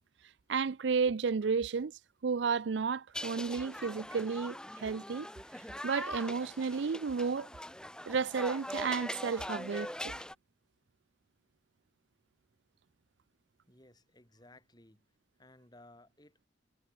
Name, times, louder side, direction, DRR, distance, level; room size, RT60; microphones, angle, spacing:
voice 1, 0.5-1.9 2.2-5.3 5.8-7.5 8.1-10.2, right 5 dB, 75° right, 0.5 m, -32 dB
sound 1, 3.1-10.3, left 1 dB, 5° left, 1.5 m, -42 dB
voice 2, 13.7-15.0 15.4-16.5, left 1 dB, 20° left, 4.7 m, -59 dB
head